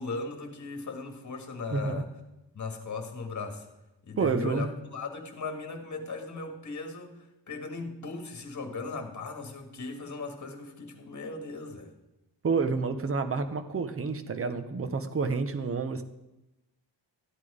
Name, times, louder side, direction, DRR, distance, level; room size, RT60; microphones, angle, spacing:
voice 1, 0.0-2.1 2.5-3.7 4.0-11.9, left 3 dB, 40° left, 4 dB, 1.8 m, -38 dB
voice 2, 1.7-2.0 4.2-4.7 12.4-16.0, right 4 dB, 30° right, 9 dB, 0.8 m, -29 dB
13.5 x 9.1 x 5.0 m, 0.96 s
wide cardioid pair, 175°, 45 cm